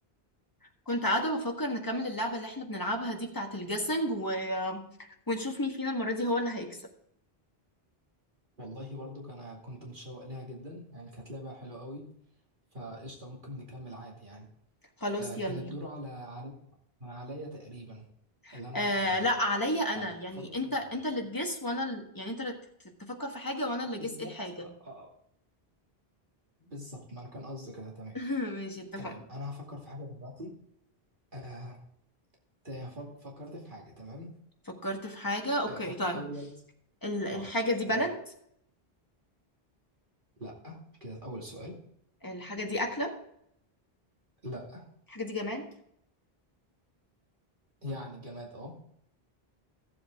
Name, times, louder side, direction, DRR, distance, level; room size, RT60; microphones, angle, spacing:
voice 1, 0.9-6.8 15.0-15.7 18.4-22.6 23.0-24.7 28.1-29.1 34.7-36.2 37.0-38.2 42.2-43.1 45.1-45.7, left 1 dB, 20° left, 2 dB, 1.5 m, -32 dB
voice 2, 8.6-12.0 12.7-14.5 15.2-16.5 17.0-18.1 18.5-19.3 19.9-20.9 24.0-25.1 26.6-28.2 29.0-30.5 31.3-31.8 32.6-34.3 35.7-36.5 37.3-37.5 37.9-38.0 40.4-41.8 44.4-44.9 47.8-48.8, equal, 55° right, -2 dB, 2.5 m, -43 dB
14.5 x 7.6 x 3.6 m, 0.72 s
omnidirectional pair, 1.0 m